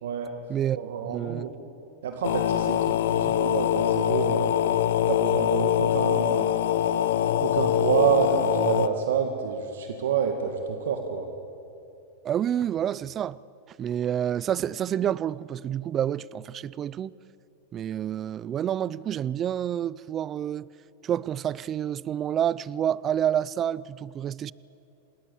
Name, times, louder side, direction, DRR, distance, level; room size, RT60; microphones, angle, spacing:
voice 1, 0.0-0.4 0.7-1.6 2.0-4.6 5.1-6.6 7.4-11.3, right 7 dB, 85° right, 2.1 m, -28 dB
voice 2, 1.0-1.5 12.2-13.4 13.8-17.1 17.7-20.7 21.0-24.5, right 10 dB, 25° right, 0.4 m, -28 dB
sound 1, 2.2-8.9, left 11 dB, 75° left, 0.8 m, -24 dB
27.0 x 20.0 x 7.2 m
supercardioid pair, 140°, 0 cm